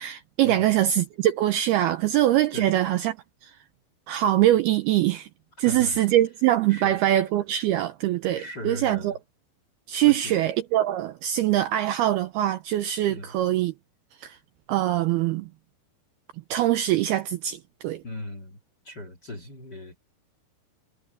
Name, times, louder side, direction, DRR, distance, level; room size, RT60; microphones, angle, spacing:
voice 1, 0.0-3.1 3.4-3.5 4.1-5.3 5.6-9.2 9.9-13.7 14.2-14.4 14.7-15.5 16.5-18.0, right 13 dB, 80° right, 2.3 m, -23 dB
voice 2, 5.6-6.0 6.7-7.0 8.3-9.2 10.0-10.5 13.1-13.3 18.0-18.6 18.8-20.0, left 1 dB, 35° left, 1.9 m, -38 dB
omnidirectional pair, 5.3 m